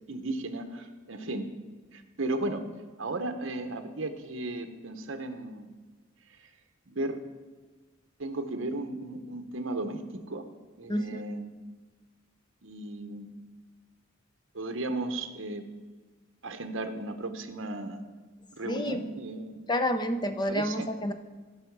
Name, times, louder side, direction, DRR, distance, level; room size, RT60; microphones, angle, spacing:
voice 1, 0.1-1.5 1.9-2.6 3.0-5.7 6.4-6.5 6.9-7.2 8.2-10.4 10.8-11.5 12.6-13.3 14.5-15.7 16.4-18.0 18.5-19.6 20.5-20.9, right 2 dB, 65° right, 6 dB, 0.9 m, -35 dB
voice 2, 10.9-11.2 18.6-19.0 19.7-21.1, left 1 dB, 20° left, 8 dB, 0.6 m, -29 dB
15.5 x 5.7 x 4.7 m, 1.4 s
head